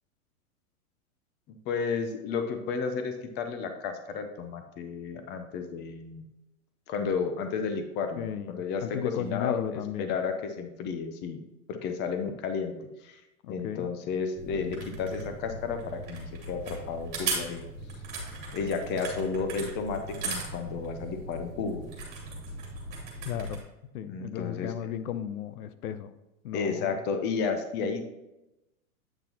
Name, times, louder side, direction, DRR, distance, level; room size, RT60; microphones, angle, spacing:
voice 1, 1.7-6.2 6.9-11.4 11.7-12.7 13.0-13.2 13.5-17.6 18.5-21.9 24.1-24.7 26.5-28.0, left 5 dB, 25° left, 7 dB, 0.7 m, -32 dB
voice 2, 8.2-10.1 13.4-13.9 23.2-23.6 23.9-26.1 26.4-27.0, left 9 dB, 90° left, 13 dB, 0.7 m, -35 dB
sound 1, 14.4-23.6, right 3 dB, 25° right, 2.7 m, -38 dB
9.0 x 5.9 x 2.9 m, 0.97 s
supercardioid pair, 150°, 43 cm